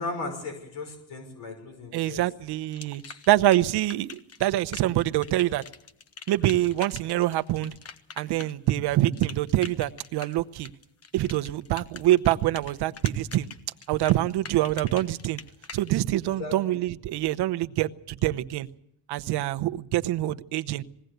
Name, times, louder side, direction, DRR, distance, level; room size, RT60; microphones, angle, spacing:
voice 1, 0.0-2.2 3.0-3.1 16.4-16.8, left 3 dB, 70° left, 5.9 m, -36 dB
voice 2, 1.9-5.6 6.3-7.8 8.2-10.7 11.1-13.5 13.9-15.4 15.7-18.7 19.1-20.8, right 14 dB, 60° right, 0.9 m, -25 dB
sound 1, 2.7-15.9, left 6 dB, 30° left, 1.3 m, -44 dB
20.5 x 17.0 x 8.0 m
cardioid pair, 125°, 45 cm